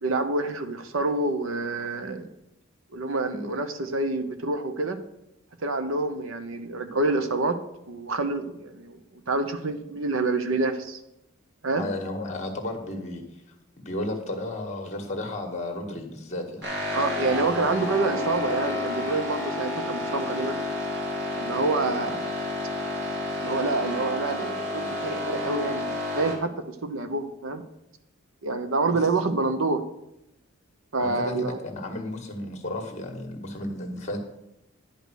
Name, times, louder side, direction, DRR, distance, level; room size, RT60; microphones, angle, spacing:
voice 1, 0.0-2.3 2.9-5.0 5.6-7.5 7.9-9.0 9.3-11.0 11.6-11.9 16.9-20.6 21.3-22.3 23.4-27.6 28.4-29.8 30.9-31.6, right 3 dB, 75° right, 9 dB, 0.9 m, -27 dB
voice 2, 11.7-13.2 13.8-16.7 28.9-29.0 31.0-34.2, left 1 dB, 35° left, 3 dB, 1.6 m, -33 dB
sound 1, 16.6-26.4, left 1 dB, 55° right, 3.0 m, -30 dB
10.5 x 5.2 x 6.3 m, 0.84 s
head